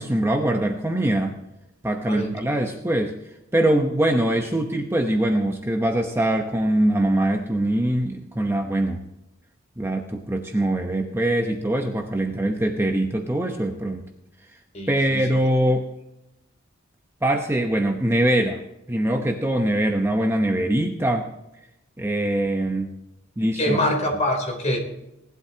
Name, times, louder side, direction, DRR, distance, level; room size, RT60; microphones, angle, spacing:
voice 1, 0.0-1.4 1.8-3.2 3.5-9.0 9.8-14.0 14.9-15.9 17.2-18.6 18.9-21.3 22.0-22.9 23.4-23.8, right 1 dB, 10° right, 3 dB, 0.8 m, -23 dB
voice 2, 14.7-15.2 23.6-24.8, left 1 dB, 35° left, 1 dB, 3.4 m, -24 dB
19.0 x 12.0 x 2.8 m, 0.91 s
head